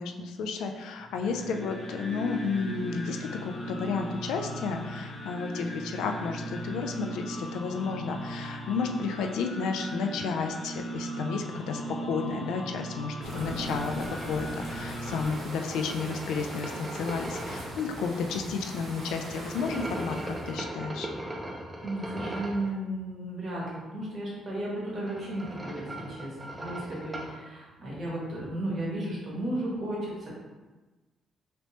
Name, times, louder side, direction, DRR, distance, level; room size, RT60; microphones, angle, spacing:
voice 1, 0.0-21.1, left 5 dB, 85° left, 4 dB, 0.3 m, -32 dB
sound 1, 1.0-15.2, right 1 dB, 40° left, 0.9 m, -38 dB
sound 2, 13.2-20.6, equal, 65° right, 1.2 m, -41 dB
sound 3, 13.3-17.8 19.4-22.7 24.8-27.4, right 1 dB, 15° right, 0.5 m, -39 dB
voice 2, 21.8-30.3, right 1 dB, 40° right, -6 dB, 1.3 m, -34 dB
2.9 x 2.9 x 3.1 m, 1.2 s
cardioid pair, 90°, 0 cm